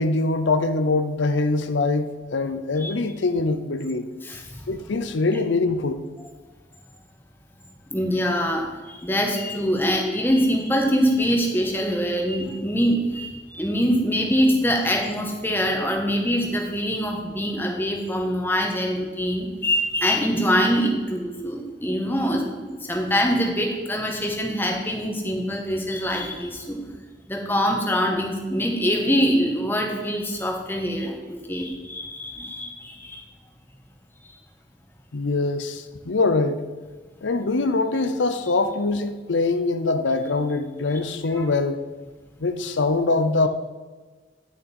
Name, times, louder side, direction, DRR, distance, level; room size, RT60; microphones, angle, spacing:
voice 1, 0.0-4.1 4.7-6.0 35.1-36.6 37.2-41.8 42.4-43.5, left 3 dB, 85° left, 9 dB, 0.7 m, -23 dB
voice 2, 4.2-4.6 7.9-26.8 27.3-33.2 34.2-34.4 41.3-41.4, equal, 10° left, 1 dB, 1.3 m, -24 dB
10.5 x 7.0 x 4.4 m, 1.3 s
head